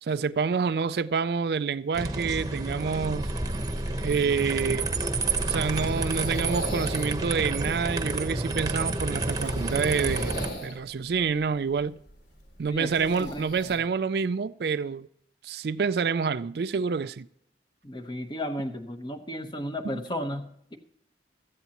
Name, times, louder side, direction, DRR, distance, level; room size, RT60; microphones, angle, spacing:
voice 1, 0.0-3.3 4.0-4.9 5.4-10.3 10.6-12.0 12.6-15.1 15.4-17.3 19.8-20.0, right 5 dB, 65° right, 0.4 m, -27 dB
sound 1, 1.9-10.5, right 2 dB, 20° right, 1.0 m, -29 dB
sound 2, 3.7-13.8, equal, 75° left, 3.0 m, -41 dB
voice 2, 12.7-13.5 17.8-20.8, equal, 25° left, 1.1 m, -34 dB
16.5 x 14.0 x 2.9 m
head